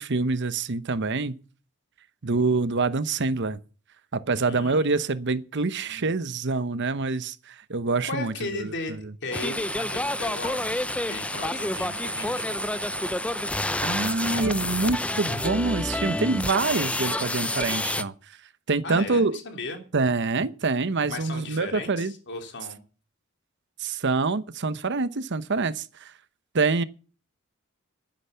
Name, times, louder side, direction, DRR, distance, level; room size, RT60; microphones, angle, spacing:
voice 1, 0.0-1.4 2.2-3.6 4.1-8.7 13.8-18.1 18.7-19.4 19.9-22.1 23.8-26.1 26.5-26.8, right 3 dB, 55° right, 0.9 m, -26 dB
voice 2, 4.5-4.9 5.8-6.1 8.0-12.6 14.3-14.6 18.8-19.8 21.1-22.8, left 2 dB, 55° left, 3.3 m, -36 dB
sound 1, 9.3-18.0, left 1 dB, 5° left, 0.6 m, -28 dB
12.0 x 10.0 x 6.9 m
head